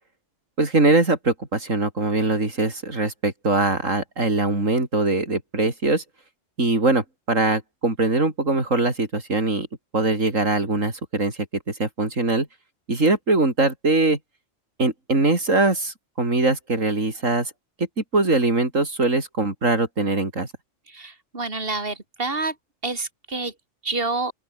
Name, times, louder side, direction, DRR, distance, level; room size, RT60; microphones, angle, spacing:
voice 1, 0.6-6.0 6.6-9.7 9.9-11.3 11.8-12.5 12.9-14.2 14.8-17.5 18.0-20.5, right 2 dB, 80° right, 4.9 m, -22 dB
voice 2, 20.9-22.5 22.8-23.5 23.8-24.3, right 3 dB, 45° right, 4.1 m, -28 dB
open air
omnidirectional pair, 1.3 m